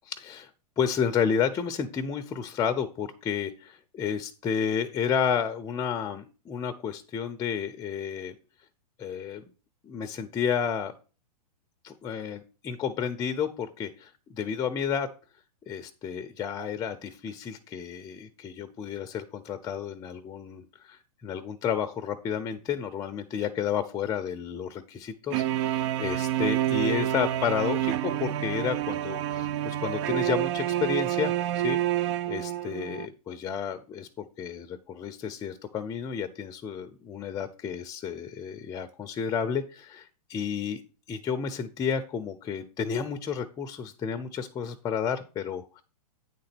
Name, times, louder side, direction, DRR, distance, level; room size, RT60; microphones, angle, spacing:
voice 1, 0.1-0.5 0.8-8.3 9.0-9.4 9.8-10.9 11.8-15.1 15.7-31.8 32.3-40.8 41.1-45.8, left 7 dB, 15° left, 9 dB, 0.6 m, -31 dB
sound 1, 25.3-33.1, right 12 dB, 45° right, 0.5 m, -28 dB
9.4 x 3.9 x 5.9 m, 0.34 s
hypercardioid pair, 130°, 21 cm